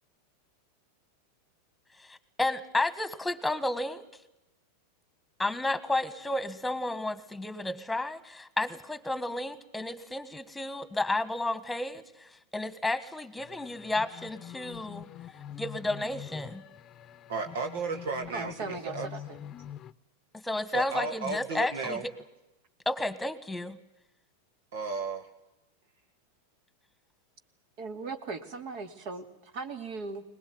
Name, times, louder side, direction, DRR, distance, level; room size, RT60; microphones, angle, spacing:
voice 1, 2.0-4.0 5.4-15.1 15.6-16.6 20.3-22.0 22.8-23.8, left 2 dB, 5° left, 15 dB, 1.7 m, -32 dB
sound 1, 13.4-19.9, left 10 dB, 35° left, 0.8 m, -45 dB
voice 2, 17.3-19.1 20.7-22.1 24.7-25.3, right 4 dB, 75° right, 6 dB, 1.9 m, -34 dB
voice 3, 18.3-19.4 27.8-30.2, right 4 dB, 55° right, 9 dB, 2.5 m, -38 dB
22.0 x 20.0 x 9.4 m, 0.92 s
hypercardioid pair, 110°, 0 cm